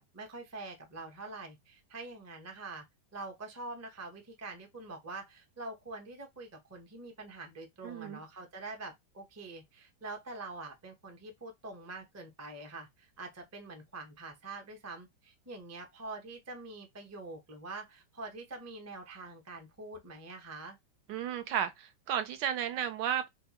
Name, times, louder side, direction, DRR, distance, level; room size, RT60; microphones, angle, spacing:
voice 1, 0.0-2.8 3.1-20.8, right 3 dB, 20° right, 0.4 m, -45 dB
voice 2, 7.8-8.2 21.1-23.3, right 9 dB, 75° right, 1.2 m, -33 dB
4.3 x 2.3 x 2.8 m
omnidirectional pair, 1.9 m